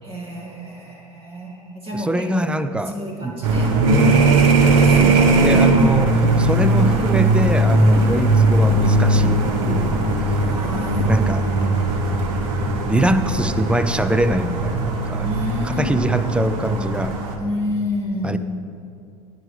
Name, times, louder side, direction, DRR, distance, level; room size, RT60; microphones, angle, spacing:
voice 1, 0.0-3.7 5.0-5.8 6.2-6.3 7.9-8.1 10.4-12.0 15.2-16.0 17.4-18.4, left 1 dB, 30° right, -2 dB, 2.1 m, -30 dB
voice 2, 1.9-3.0 3.2-3.4 5.0-10.0 11.0-11.4 12.9-15.3 15.6-17.2 18.2-18.4, right 1 dB, 5° right, 11 dB, 0.4 m, -23 dB
sound 1, 3.4-17.4, right 2 dB, 65° right, 1.2 m, -18 dB
10.5 x 9.1 x 3.3 m, 2.4 s
hypercardioid pair, 85°, 19 cm